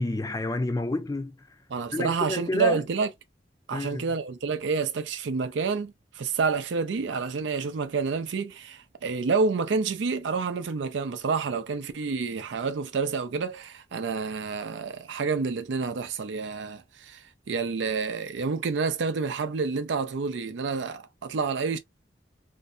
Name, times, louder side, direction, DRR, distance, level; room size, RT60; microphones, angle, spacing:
voice 1, 0.0-1.5 1.9-2.8 3.7-4.0, left 2 dB, 20° left, 0.3 m, -29 dB
voice 2, 1.7-3.1 3.7-21.8, right 4 dB, 90° right, 0.5 m, -29 dB
2.6 x 2.1 x 2.4 m
head